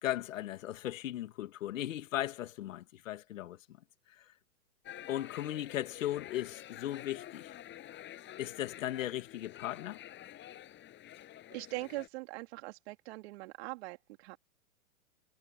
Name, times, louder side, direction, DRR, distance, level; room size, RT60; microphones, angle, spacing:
voice 1, 0.0-3.6 5.1-7.5 8.4-10.0, left 13 dB, 60° left, 2.2 m, -37 dB
sound 1, 4.8-12.1, left 12 dB, 25° left, 8.0 m, -49 dB
voice 2, 11.5-14.4, right 23 dB, 45° right, 3.1 m, -42 dB
hypercardioid pair, 125°, 44 cm